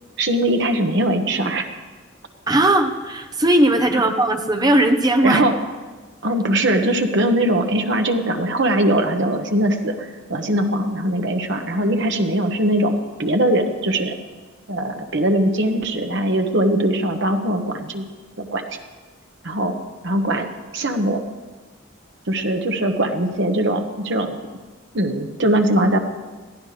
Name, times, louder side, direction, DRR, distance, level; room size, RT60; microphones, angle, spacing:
voice 1, 0.2-1.7 3.9-4.1 5.2-5.5 6.2-9.9 10.3-14.2 14.7-18.0 18.4-18.6 19.4-19.8 20.0-20.5 20.7-21.2 22.3-24.4 24.9-26.0, right 1 dB, 60° right, 4 dB, 1.4 m, -21 dB
voice 2, 2.5-5.4, right 1 dB, 20° right, 6 dB, 0.9 m, -18 dB
21.5 x 14.5 x 3.4 m, 1.3 s
head